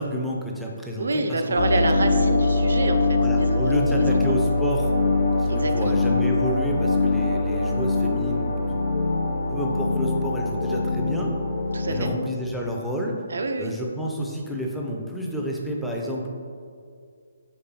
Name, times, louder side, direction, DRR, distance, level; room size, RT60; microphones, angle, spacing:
voice 1, 0.0-1.8 3.2-4.9 5.4-8.8 9.5-11.3 11.9-13.2 13.6-16.3, equal, ahead, -3 dB, 0.5 m, -30 dB
voice 2, 1.0-4.2 5.5-5.9 11.7-12.1 13.3-13.7, right 2 dB, 60° right, 6 dB, 0.4 m, -27 dB
sound 1, 1.6-12.1, left 3 dB, 55° left, 0.5 m, -23 dB
sound 2, 7.2-12.1, left 2 dB, 85° left, 1.1 m, -38 dB
5.2 x 3.3 x 2.9 m, 2.3 s
figure-of-eight pair, 140°, 0 cm